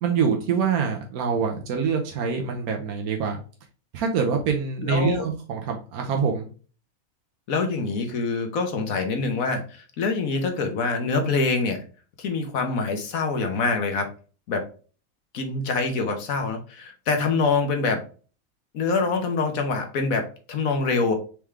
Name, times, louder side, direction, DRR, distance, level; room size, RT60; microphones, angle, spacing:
voice 1, 0.0-3.4 3.9-6.5, right 6 dB, 85° right, 2 dB, 1.3 m, -25 dB
voice 2, 4.8-5.2 7.5-11.8 12.2-14.1 14.5-14.7 15.3-18.0 18.7-21.1, left 4 dB, 70° left, 5 dB, 1.4 m, -25 dB
4.7 x 3.6 x 3.2 m, 0.38 s
omnidirectional pair, 1.5 m